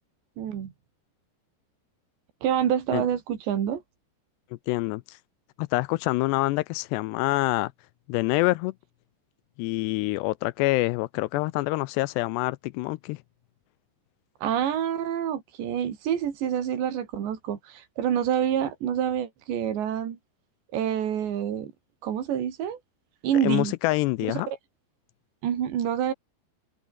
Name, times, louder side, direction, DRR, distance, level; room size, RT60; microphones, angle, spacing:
voice 1, 0.4-0.7 2.4-3.8 14.4-20.2 20.7-21.7 22.0-22.8 23.2-23.7 24.3-24.6 25.4-26.1, right 9 dB, 85° right, 5.1 m, -27 dB
voice 2, 4.7-5.2 5.6-7.7 8.1-8.7 9.6-13.2 23.4-24.5, left 20 dB, 85° left, 2.7 m, -26 dB
omnidirectional pair, 5.0 m